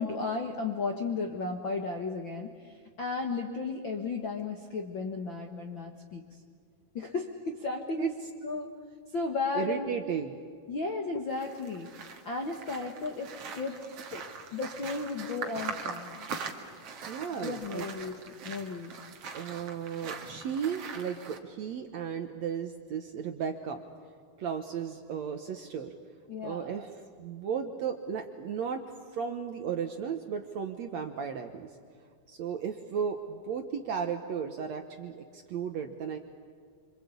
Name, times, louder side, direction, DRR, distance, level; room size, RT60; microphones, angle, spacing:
voice 1, 0.0-2.5 3.0-6.2 6.9-8.7 9.1-9.9 10.7-11.9 12.2-13.8 14.1-14.2 14.5-16.2 17.4-18.2 18.4-18.9 26.3-26.8, left 3 dB, 55° left, 3 dB, 1.3 m, -34 dB
voice 2, 9.6-10.4 17.1-17.9 19.3-23.9 24.4-25.9 26.4-26.9 27.2-28.8 29.1-31.7 32.3-36.2, right 7 dB, 65° right, 6 dB, 1.8 m, -35 dB
sound 1, 11.3-21.4, right 5 dB, 50° right, 2.2 m, -42 dB
26.5 x 26.0 x 8.4 m, 2.1 s
omnidirectional pair, 4.3 m